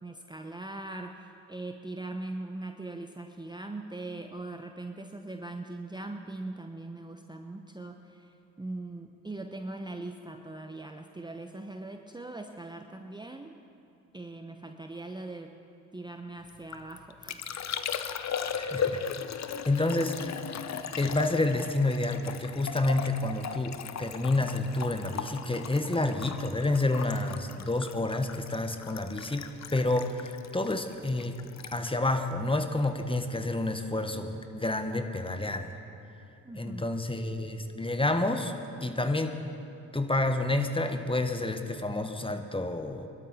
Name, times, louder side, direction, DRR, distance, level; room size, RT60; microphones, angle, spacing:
voice 1, 0.0-13.6 14.1-15.6 15.9-17.4 18.3-18.5 36.4-36.9, right 2 dB, 10° right, 5 dB, 0.9 m, -41 dB
Liquid, 16.5-33.1 33.4-33.9, left 7 dB, 45° left, 0.9 m, -38 dB
voice 2, 18.5-19.3 19.6-20.3 21.0-31.4 31.7-35.7 36.6-38.5 38.8-39.4 39.9-43.1, left 2 dB, 15° left, 7 dB, 1.3 m, -29 dB
22.0 x 12.5 x 4.3 m, 3.0 s
hypercardioid pair, 50°, 38 cm